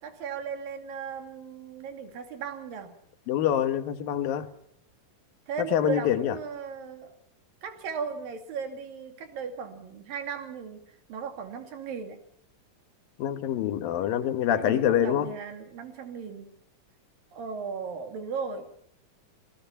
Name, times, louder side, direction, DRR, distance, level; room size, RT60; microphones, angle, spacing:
voice 1, 0.0-2.9 5.5-7.1 7.6-10.8 11.1-12.2 14.6-16.5 17.3-18.7, right 6 dB, 80° right, 4.2 m, -36 dB
voice 2, 3.3-4.5 5.6-6.4 13.2-15.3, left 10 dB, 85° left, 3.2 m, -25 dB
26.5 x 19.5 x 5.7 m
omnidirectional pair, 4.0 m